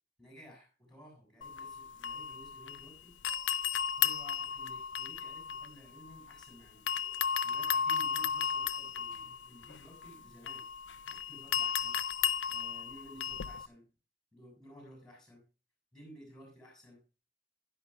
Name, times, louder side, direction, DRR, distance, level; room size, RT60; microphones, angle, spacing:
voice 1, 0.2-3.2 4.0-6.9 7.4-10.7 11.1-12.0 12.5-13.9 14.3-15.5 15.9-17.0, equal, 5° left, -1 dB, 6.7 m, -55 dB
sound 1, 1.4-2.9 3.2-6.5 6.9-13.7, left 7 dB, 90° left, 0.5 m, -34 dB
16.5 x 11.5 x 2.2 m, 0.33 s
head